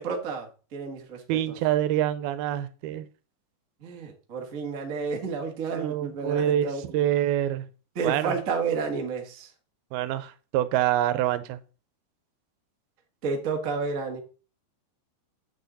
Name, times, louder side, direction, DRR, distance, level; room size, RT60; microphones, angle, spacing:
voice 1, 0.0-1.4 3.8-6.8 7.9-9.5 13.2-14.2, right 5 dB, 65° right, 0.8 m, -31 dB
voice 2, 1.3-3.1 5.7-6.7 6.9-7.7 8.0-8.4 9.9-11.6, right 12 dB, 85° right, 2.6 m, -26 dB
8.6 x 6.4 x 4.1 m
omnidirectional pair, 4.4 m